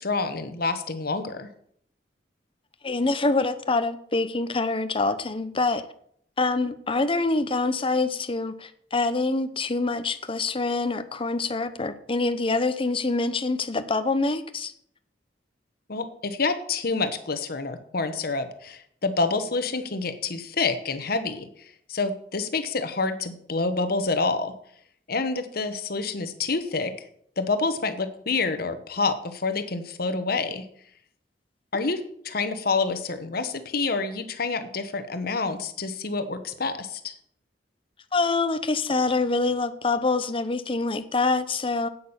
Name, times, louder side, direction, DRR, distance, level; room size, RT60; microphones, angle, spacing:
voice 1, 0.0-1.5 15.9-21.5 21.9-24.5 25.1-26.9 27.4-30.7 31.7-37.1, left 3 dB, 60° left, 10 dB, 1.2 m, -27 dB
voice 2, 2.8-5.8 6.4-14.7 38.1-41.9, left 3 dB, 30° left, 11 dB, 0.8 m, -25 dB
8.5 x 8.5 x 7.2 m, 0.66 s
head